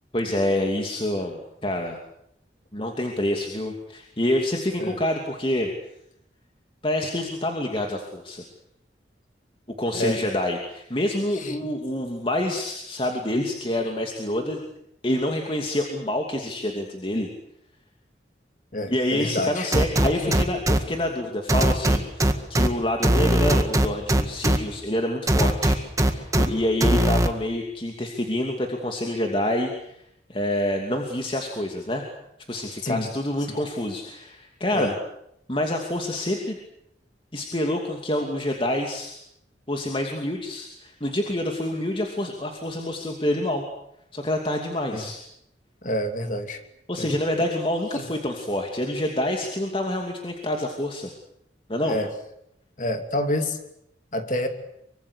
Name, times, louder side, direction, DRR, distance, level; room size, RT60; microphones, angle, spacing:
voice 1, 0.1-2.0 2.7-5.7 6.8-8.4 9.8-14.6 15.0-17.3 18.9-30.0 30.3-32.1 32.5-35.0 35.5-36.6 37.3-39.2 39.7-43.6 44.1-45.2 46.9-51.1 51.7-52.0, left 1 dB, 30° left, 2 dB, 2.7 m, -27 dB
voice 2, 18.7-19.7 20.2-20.4 32.8-33.1 34.7-34.9 44.9-45.1 45.8-46.6 47.0-47.1 47.9-48.0 51.8-52.1 52.8-53.6 54.1-54.5, left 1 dB, 45° left, 6 dB, 2.8 m, -28 dB
sound 1, 19.7-20.8 21.5-22.7 23.0-24.6 25.3-26.5 26.8-27.3, right 1 dB, 20° right, 1.8 m, -19 dB
24.5 x 24.5 x 8.4 m, 0.77 s
head